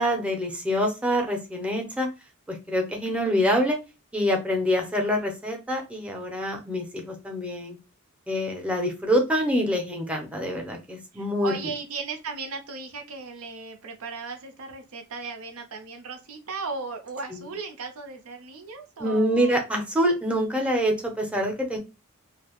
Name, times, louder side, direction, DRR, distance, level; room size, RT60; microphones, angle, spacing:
voice 1, 0.0-2.1 2.5-3.8 4.1-7.8 8.3-11.5 17.3-17.4 19.0-21.8, equal, 5° right, 2 dB, 0.6 m, -25 dB
voice 2, 11.1-19.7, right 4 dB, 75° right, 5 dB, 0.7 m, -36 dB
2.8 x 2.0 x 2.9 m, 0.27 s
head